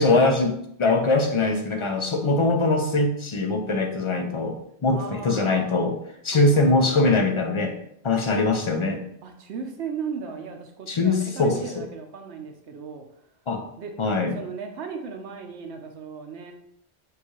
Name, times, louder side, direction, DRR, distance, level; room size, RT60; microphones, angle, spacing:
voice 1, 0.0-4.6 4.8-6.0 6.2-7.7 8.0-9.0 10.9-11.8 13.5-13.6 14.0-14.4, left 2 dB, 50° left, 4 dB, 0.4 m, -22 dB
voice 2, 4.9-5.8 6.3-7.2 9.2-13.1 13.8-13.9 14.3-16.5, right 6 dB, 90° right, 4 dB, 1.0 m, -37 dB
6.5 x 2.4 x 3.1 m, 0.73 s
omnidirectional pair, 1.1 m